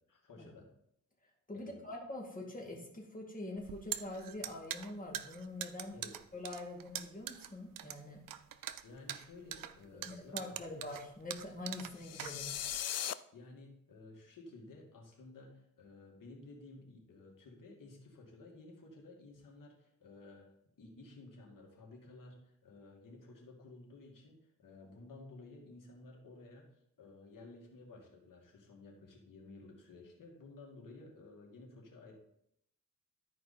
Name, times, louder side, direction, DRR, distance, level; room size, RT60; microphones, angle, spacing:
voice 1, 0.1-0.7 1.5-1.8 5.9-6.1 8.8-10.8 13.3-20.5 20.8-26.7 27.0-32.1, left 2 dB, 80° left, 0 dB, 2.3 m, -54 dB
voice 2, 1.5-6.0 6.3-8.2 10.0-12.6, left 2 dB, 25° left, 0 dB, 2.3 m, -44 dB
sound 1, 3.6-12.8, right 11 dB, 85° right, 0.6 m, -43 dB
sound 2, 12.0-13.1, left 10 dB, 55° left, 0.4 m, -38 dB
12.5 x 4.7 x 4.3 m, 0.75 s
wide cardioid pair, 100°, 32 cm